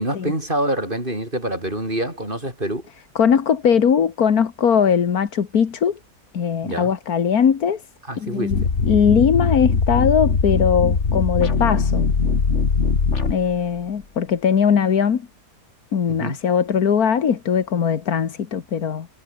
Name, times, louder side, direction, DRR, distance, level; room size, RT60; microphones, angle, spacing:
voice 1, 0.0-2.8 6.6-6.9 8.1-8.7 16.1-16.4, right 1 dB, 35° right, 7.9 m, -26 dB
voice 2, 3.2-6.0 6.3-7.8 8.2-12.1 13.3-15.2 15.9-19.1, left 7 dB, 85° left, 2.0 m, -20 dB
sound 1, 8.5-13.8, left 4 dB, 50° left, 2.3 m, -20 dB
omnidirectional pair, 1.5 m